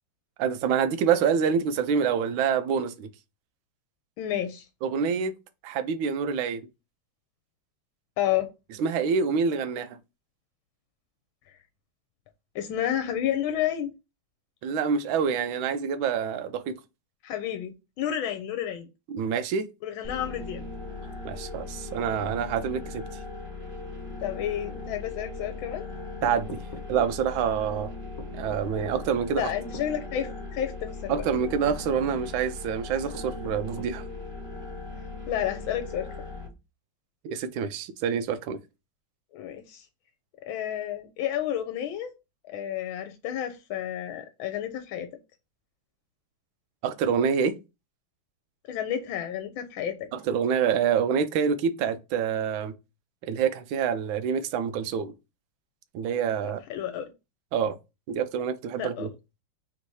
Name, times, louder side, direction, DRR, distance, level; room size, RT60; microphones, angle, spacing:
voice 1, 0.4-3.1 4.8-5.3 5.6-6.7 8.8-10.0 14.6-16.8 19.1-19.7 21.2-23.0 26.2-26.6 26.9-27.9 28.3-29.5 31.1-34.0 37.2-38.6 46.8-47.6 50.1-52.7 53.3-55.1 55.9-56.6 57.5-57.7 58.1-59.1, right 7 dB, 80° right, 1.4 m, -26 dB
voice 2, 4.2-4.7 8.2-8.5 11.5-11.6 12.5-13.9 17.2-17.7 18.0-18.9 19.8-20.6 24.2-25.9 29.4-31.2 35.3-36.1 39.3-39.9 40.4-42.1 42.4-45.1 48.7-50.1 56.7-57.0 58.8-59.1, left 10 dB, 85° left, 1.4 m, -30 dB
sound 1, 20.0-36.5, left 3 dB, 30° right, 1.3 m, -39 dB
sound 2, 26.2-27.2 28.2-28.4 29.0-29.1 29.7-29.9 31.1-31.9 33.1-34.0, left 1 dB, 45° left, 0.5 m, -42 dB
3.7 x 2.7 x 4.5 m
omnidirectional pair, 2.2 m